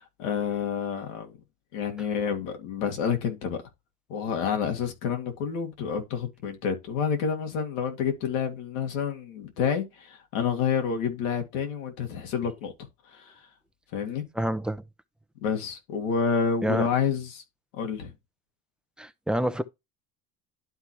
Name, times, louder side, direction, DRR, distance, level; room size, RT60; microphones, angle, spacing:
voice 1, 0.0-1.4 1.7-3.6 4.1-12.7 13.1-13.3 13.9-14.2 15.4-17.4 17.7-18.1, left 6 dB, 90° left, 2.2 m, -29 dB
voice 2, 14.4-14.8 16.6-16.9 19.0-19.6, equal, ahead, 0.7 m, -27 dB
11.5 x 4.1 x 3.1 m
supercardioid pair, 90°, 39 cm